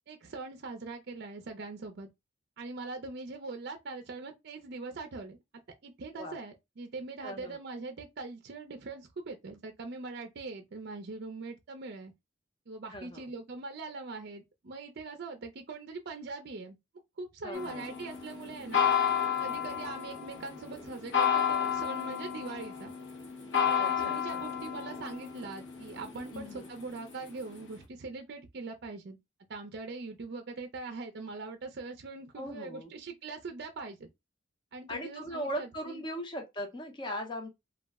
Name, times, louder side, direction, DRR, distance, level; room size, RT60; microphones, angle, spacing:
voice 1, 0.1-2.1 2.6-5.4 5.8-12.1 12.7-16.8 17.2-18.9 19.4-22.9 23.7-29.2 29.5-34.1 34.7-36.0, right 3 dB, 55° right, 0.5 m, -42 dB
voice 2, 7.2-7.6 12.9-13.3 17.4-17.8 23.8-24.4 26.3-26.7 32.4-32.9 34.9-37.5, equal, 25° left, 0.6 m, -39 dB
sound 1, 17.5-27.7, left 8 dB, 65° left, 0.8 m, -32 dB
2.3 x 2.0 x 3.4 m
head